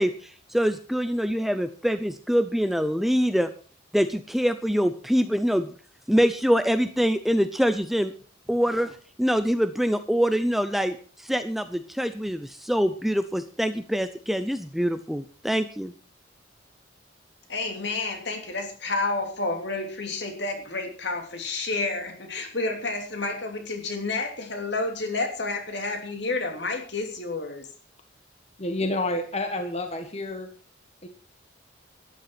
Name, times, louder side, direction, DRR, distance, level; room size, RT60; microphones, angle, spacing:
voice 1, 0.0-3.5 3.9-5.7 6.1-8.1 8.5-15.9, equal, ahead, 10 dB, 0.6 m, -24 dB
voice 2, 17.5-27.7, left 3 dB, 60° left, 4 dB, 3.0 m, -30 dB
voice 3, 28.6-30.5 31.0-31.1, left 2 dB, 30° left, 6 dB, 1.4 m, -29 dB
13.0 x 10.5 x 5.9 m, 0.41 s
head